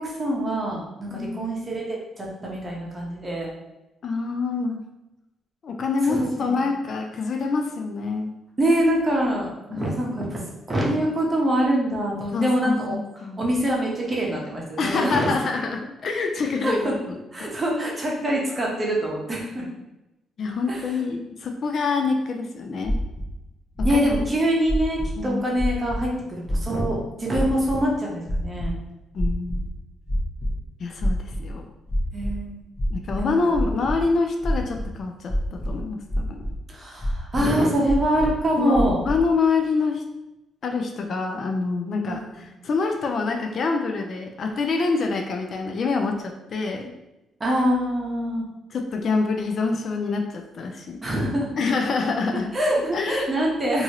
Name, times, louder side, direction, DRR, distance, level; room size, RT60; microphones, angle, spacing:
voice 1, 0.0-1.8 2.2-3.5 6.0-6.6 8.6-10.4 10.7-15.3 16.6-16.9 17.3-19.7 20.7-21.0 23.8-28.7 32.1-32.6 33.2-33.4 36.7-39.0 42.0-42.3 47.4-48.5 51.0-51.5 52.5-53.8, right 1 dB, 25° right, -3 dB, 0.9 m, -24 dB
voice 2, 1.1-1.5 4.0-4.8 5.6-8.3 9.7-9.9 12.3-13.4 14.8-17.2 20.4-23.0 23.8-24.0 25.2-25.4 29.1-29.7 30.8-31.7 32.9-36.4 38.6-40.0 40.6-46.9 48.7-51.0 51.6-52.5 52.9-53.3, left 4 dB, 55° left, 4 dB, 0.4 m, -26 dB
sound 1, 22.8-23.3 23.8-24.2 24.7-25.2 25.6-26.0 26.5-26.9 27.3-27.7 28.2-28.7 29.2-29.7 30.1-30.5 31.0-31.5 31.9-32.3 32.8-34.0 34.4-34.9 35.3-35.8 36.1-36.5 37.0-37.4 37.9-38.4 38.7-39.2, equal, 20° left, 1.0 m, -26 dB
2.8 x 2.6 x 2.9 m, 0.96 s
cardioid pair, 90°, 0 cm